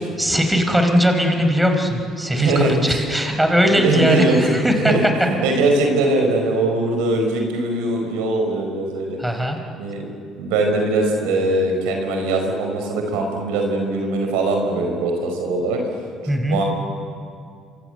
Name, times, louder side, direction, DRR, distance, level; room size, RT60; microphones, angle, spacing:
voice 1, 0.2-4.9 9.2-9.6 16.3-16.6, equal, 5° right, 4 dB, 5.0 m, -19 dB
voice 2, 2.4-3.0 3.7-9.2 9.8-10.0 10.4-15.8 16.5-16.6, right 2 dB, 75° right, 3 dB, 4.8 m, -21 dB
26.0 x 25.5 x 8.1 m, 2.3 s
hypercardioid pair, 60°, 0 cm